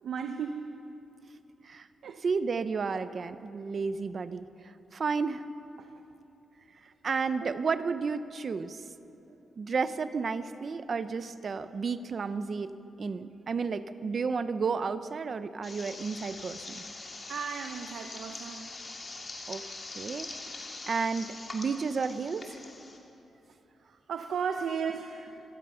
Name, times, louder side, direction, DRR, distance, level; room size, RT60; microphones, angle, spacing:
voice 1, 0.0-0.7 2.0-2.2 5.8-5.9 7.4-7.5 17.3-18.7 19.5-19.6 23.9-25.4, right 6 dB, 65° right, 6 dB, 0.9 m, -35 dB
voice 2, 2.2-4.5 4.9-5.4 7.0-8.8 9.6-12.7 13.0-16.8 19.5-19.6 20.0-20.3 20.9-22.6, right 5 dB, 35° right, 12 dB, 0.7 m, -32 dB
sound 1, 15.6-23.0, left 3 dB, 30° left, 2.4 m, -43 dB
26.0 x 18.0 x 5.7 m, 2.9 s
wide cardioid pair, 180°, 0 cm